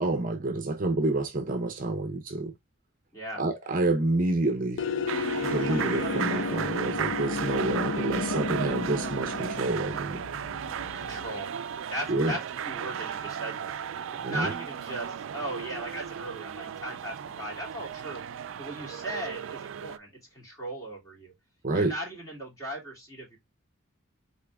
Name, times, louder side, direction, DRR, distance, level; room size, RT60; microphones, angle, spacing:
voice 1, 0.0-2.5 3.4-4.8 5.4-10.2 12.1-12.4 14.2-14.5 21.6-21.9, right 2 dB, 40° right, 0.7 m, -28 dB
sound 1, 4.8-11.4, left 4 dB, 60° left, 0.4 m, -33 dB
sound 2, 5.1-20.0, right 8 dB, 70° right, 0.3 m, -35 dB
voice 2, 10.9-11.5 11.9-13.8 14.3-18.2 18.6-21.3 21.7-23.4, right 1 dB, 15° left, 2.7 m, -37 dB
4.3 x 3.6 x 3.4 m
head